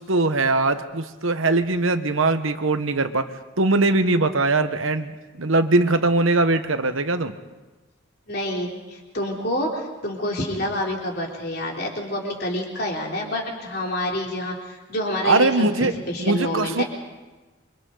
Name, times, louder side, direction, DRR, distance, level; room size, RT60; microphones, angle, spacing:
voice 1, 0.0-3.2 3.6-5.1 5.4-7.3 15.2-15.9 16.2-16.8, right 2 dB, 80° right, 9 dB, 1.2 m, -21 dB
voice 2, 8.3-16.8, left 1 dB, 50° left, -1 dB, 3.6 m, -28 dB
27.5 x 24.5 x 4.0 m, 1.2 s
head